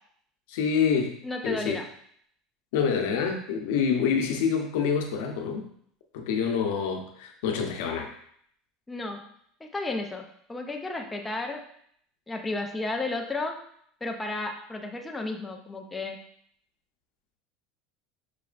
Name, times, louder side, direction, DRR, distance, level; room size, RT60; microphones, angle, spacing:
voice 1, 0.5-1.2 1.4-1.8 2.7-5.6 6.1-8.1, left 6 dB, 85° left, 3 dB, 0.7 m, -26 dB
voice 2, 1.2-1.9 8.9-9.2 9.6-11.6 12.3-13.6 14.0-16.2, left 2 dB, 10° left, 2 dB, 0.4 m, -33 dB
5.8 x 3.0 x 2.5 m, 0.66 s
cardioid pair, 155°, 0 cm